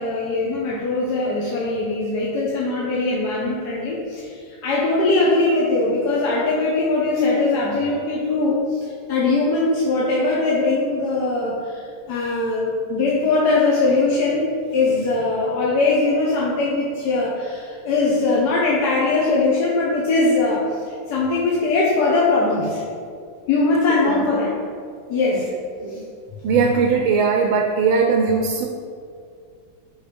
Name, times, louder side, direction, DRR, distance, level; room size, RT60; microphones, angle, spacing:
voice 1, 0.0-22.8 23.5-24.6 25.1-25.5 25.9-26.0, left 3 dB, 60° left, -5 dB, 1.3 m, -21 dB
voice 2, 26.4-28.7, right 5 dB, 85° right, 3 dB, 1.4 m, -19 dB
7.0 x 4.9 x 5.0 m, 2.2 s
omnidirectional pair, 2.2 m